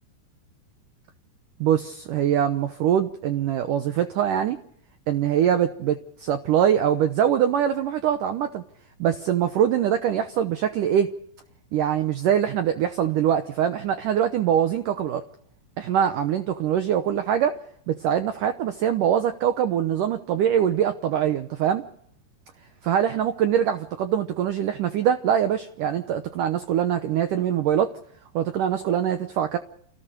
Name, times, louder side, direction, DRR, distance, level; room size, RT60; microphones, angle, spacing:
voice 1, 1.6-4.6 5.1-8.6 9.0-11.1 11.7-15.2 15.8-17.6 17.9-21.9 22.8-27.9 28.3-29.6, right 9 dB, 85° right, 8 dB, 1.8 m, -23 dB
29.0 x 18.0 x 5.2 m, 0.67 s
omnidirectional pair, 5.1 m